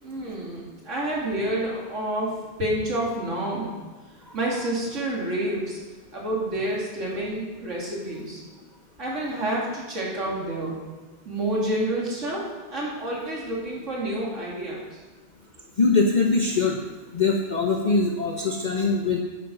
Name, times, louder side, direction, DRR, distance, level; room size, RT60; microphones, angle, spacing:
voice 1, 0.0-2.3 2.6-3.7 4.3-5.8 6.1-8.4 9.0-10.8 11.3-12.4 12.7-14.8, right 1 dB, 85° right, -4 dB, 2.8 m, -28 dB
voice 2, 15.8-16.8 17.1-19.2, left 4 dB, 40° left, 1 dB, 0.9 m, -22 dB
9.6 x 7.9 x 5.8 m, 1.3 s
omnidirectional pair, 1.3 m